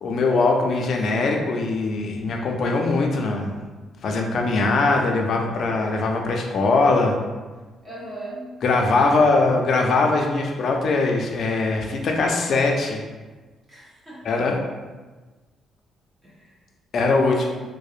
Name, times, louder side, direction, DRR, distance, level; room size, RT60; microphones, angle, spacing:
voice 1, 0.0-3.6 4.0-7.2 8.6-13.0 14.2-14.6 16.9-17.5, left 3 dB, 60° left, 2 dB, 0.4 m, -21 dB
voice 2, 7.8-8.5 8.9-9.1 13.7-14.4 16.2-16.5 17.1-17.5, right 1 dB, 25° right, -8 dB, 1.0 m, -38 dB
2.6 x 2.0 x 2.4 m, 1.3 s
cardioid pair, 90°, 0 cm